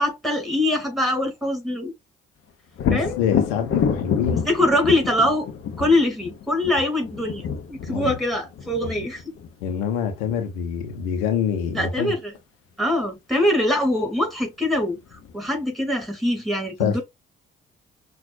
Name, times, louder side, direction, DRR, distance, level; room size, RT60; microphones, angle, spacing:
voice 1, 0.0-1.9 2.9-3.2 4.3-5.5 5.8-9.2 11.7-12.3 12.8-15.0 15.3-17.0, left 1 dB, ahead, 2.7 m, -23 dB
voice 2, 2.8-4.4 7.9-8.2 9.6-12.2 16.8-17.0, left 8 dB, 70° left, 0.9 m, -25 dB
Thunder, 2.8-10.4 14.1-14.2 14.7-15.5, left 7 dB, 50° left, 0.9 m, -29 dB
5.8 x 2.6 x 2.6 m
figure-of-eight pair, 45°, 30 cm